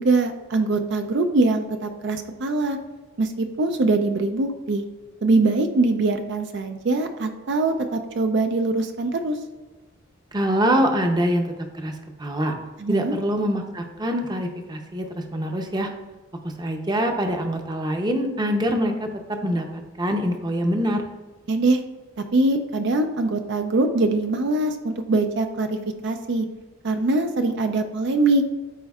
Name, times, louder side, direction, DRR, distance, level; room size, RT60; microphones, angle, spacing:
voice 1, 0.0-2.8 3.2-4.8 5.2-9.4 12.8-13.1 21.5-21.8 22.3-25.8 26.0-26.5 26.8-28.4, right 2 dB, 60° right, 6 dB, 0.5 m, -22 dB
voice 2, 10.3-11.9 12.2-12.5 12.9-15.9 16.6-21.0, equal, 20° right, 4 dB, 0.7 m, -24 dB
12.5 x 4.4 x 2.4 m, 1.2 s
head